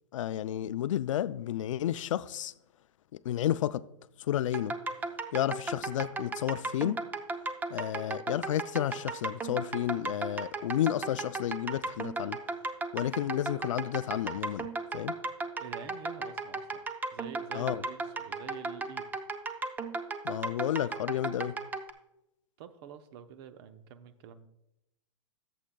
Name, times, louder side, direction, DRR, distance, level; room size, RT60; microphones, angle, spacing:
voice 1, 0.1-2.5 3.1-3.8 4.2-4.8 5.3-7.0 7.7-12.4 12.9-14.7 14.9-15.1 17.5-17.8 20.2-21.6, left 11 dB, 80° left, 0.4 m, -31 dB
sound 1, 4.5-21.9, right 3 dB, 10° right, 0.5 m, -35 dB
voice 2, 15.6-16.8 17.1-19.1 22.6-24.5, right 8 dB, 50° right, 0.8 m, -47 dB
16.0 x 7.4 x 2.3 m
hypercardioid pair, 130°, 16 cm